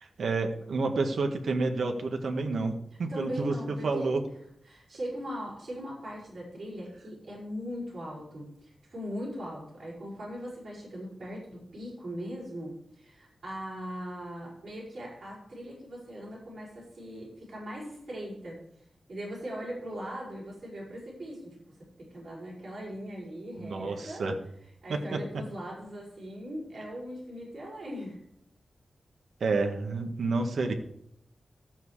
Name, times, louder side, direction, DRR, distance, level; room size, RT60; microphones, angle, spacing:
voice 1, 0.0-2.7 3.0-3.5 3.8-4.2 23.6-24.3 24.9-25.2 29.4-30.7, right 3 dB, 85° right, 4 dB, 1.7 m, -29 dB
voice 2, 3.1-4.0 4.6-24.3 24.8-28.2, equal, 45° right, -7 dB, 5.9 m, -40 dB
13.5 x 8.2 x 4.9 m, 0.73 s
wide cardioid pair, 150°, 0 cm